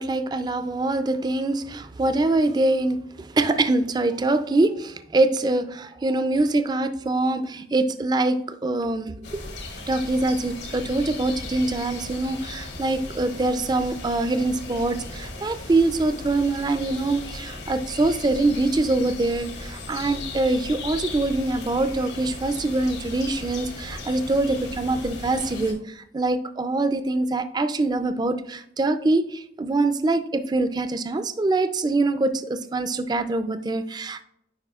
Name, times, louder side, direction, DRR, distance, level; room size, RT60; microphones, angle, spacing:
voice 1, 0.0-9.6 9.9-34.2, right 2 dB, 25° right, 11 dB, 0.4 m, -24 dB
sound 1, 9.2-25.7, left 2 dB, 75° left, 1.4 m, -37 dB
9.0 x 5.0 x 2.4 m, 0.76 s
head